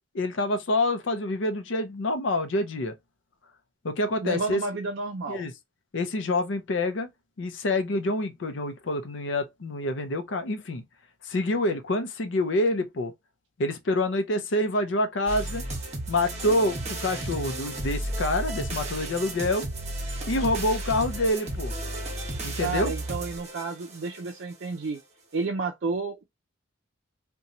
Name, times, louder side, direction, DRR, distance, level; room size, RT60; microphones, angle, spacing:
voice 1, 0.1-2.9 3.8-4.6 5.3-5.5 5.9-7.1 7.4-10.8 11.2-13.1 13.6-15.6 16.1-19.7 20.3-21.7 22.4-22.9, left 1 dB, 65° left, 0.5 m, -27 dB
voice 2, 4.2-5.4 22.6-25.0 25.3-26.2, right 4 dB, 60° right, 0.4 m, -31 dB
sound 1, 15.3-24.3, right 1 dB, 35° right, 0.8 m, -33 dB
2.9 x 2.2 x 2.5 m
head